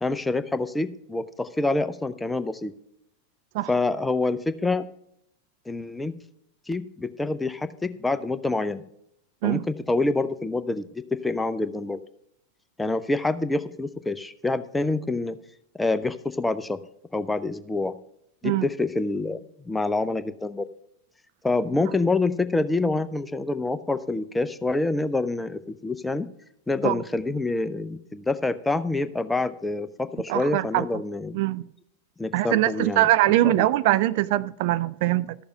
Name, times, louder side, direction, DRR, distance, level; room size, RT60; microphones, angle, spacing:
voice 1, 0.0-2.7 3.7-4.9 5.7-6.2 6.7-8.8 9.4-12.0 12.8-15.4 15.8-16.8 17.1-18.0 18.4-19.4 19.6-20.7 21.4-26.3 26.7-31.4 32.2-33.1 33.4-33.7, left 2 dB, 5° left, 11 dB, 0.6 m, -26 dB
voice 2, 30.3-30.8 31.3-31.6 32.3-35.4, right 15 dB, 50° right, 16 dB, 0.3 m, -22 dB
13.0 x 6.8 x 5.1 m, 0.76 s
figure-of-eight pair, 90°, 0 cm